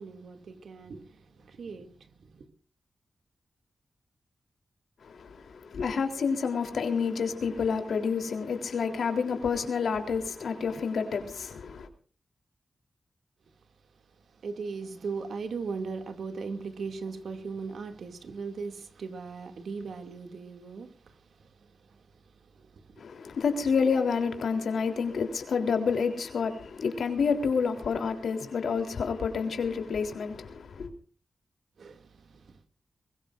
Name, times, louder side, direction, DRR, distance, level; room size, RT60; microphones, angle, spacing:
voice 1, 0.0-2.5 14.3-22.2 22.5-23.0 31.8-32.6, right 4 dB, 80° right, 2.5 m, -39 dB
voice 2, 5.0-11.9 23.0-30.9, left 5 dB, 85° left, 3.6 m, -29 dB
23.0 x 21.5 x 2.6 m
wide cardioid pair, 135°, 0 cm